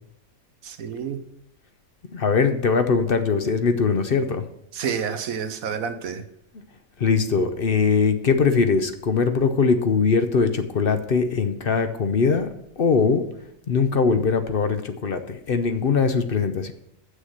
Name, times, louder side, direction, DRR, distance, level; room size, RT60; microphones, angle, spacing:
voice 1, 0.6-1.2 4.7-6.2, right 7 dB, 90° right, 9 dB, 1.4 m, -29 dB
voice 2, 2.1-4.5 7.0-12.5 12.8-13.3 13.7-16.7, left 5 dB, 50° left, 9 dB, 0.8 m, -21 dB
8.0 x 6.5 x 7.7 m, 0.75 s
omnidirectional pair, 1.4 m